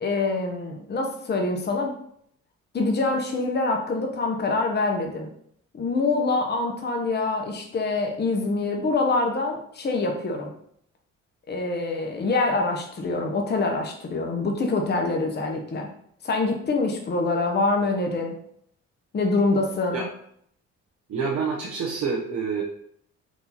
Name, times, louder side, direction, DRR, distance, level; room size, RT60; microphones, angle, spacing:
voice 1, 0.0-1.9 2.7-5.3 5.7-10.5 11.5-15.9 16.2-18.3 19.1-20.0, left 3 dB, 35° left, 2 dB, 0.9 m, -25 dB
voice 2, 21.1-22.6, right 5 dB, 65° right, -4 dB, 1.0 m, -27 dB
4.7 x 2.7 x 4.1 m, 0.68 s
cardioid pair, 90°, 30 cm